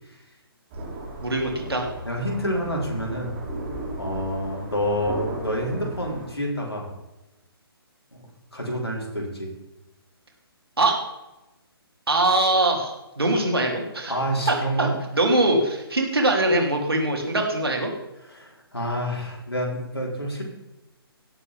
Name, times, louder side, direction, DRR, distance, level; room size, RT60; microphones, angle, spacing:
sound 1, 0.7-6.3, right 1 dB, 25° right, 3.6 m, -35 dB
voice 1, 1.2-1.9 10.8-11.0 12.1-14.1 14.5-17.9, right 2 dB, 70° right, 1 dB, 3.3 m, -22 dB
voice 2, 2.0-3.3 4.0-6.9 8.1-9.5 14.1-14.9 18.2-20.4, equal, 75° left, -1 dB, 4.4 m, -28 dB
18.0 x 8.1 x 3.8 m, 0.97 s
figure-of-eight pair, 135°, 13 cm